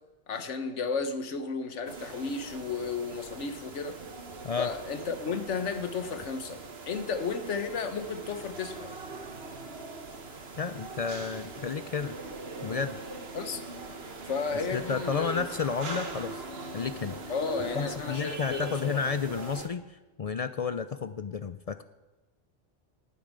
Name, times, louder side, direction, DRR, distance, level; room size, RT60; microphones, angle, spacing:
voice 1, 0.3-4.0 4.6-9.0 13.3-13.6 14.3-15.5 17.3-19.0, left 5 dB, 80° left, 9 dB, 1.4 m, -33 dB
sound 1, 1.9-19.7, right 3 dB, 60° right, 1.5 m, -41 dB
voice 2, 4.4-4.7 10.6-12.1 12.6-13.0 14.7-16.4 16.7-17.2 17.7-21.8, left 5 dB, 60° left, 11 dB, 0.3 m, -32 dB
11.5 x 7.1 x 9.5 m, 1.1 s
omnidirectional pair, 1.2 m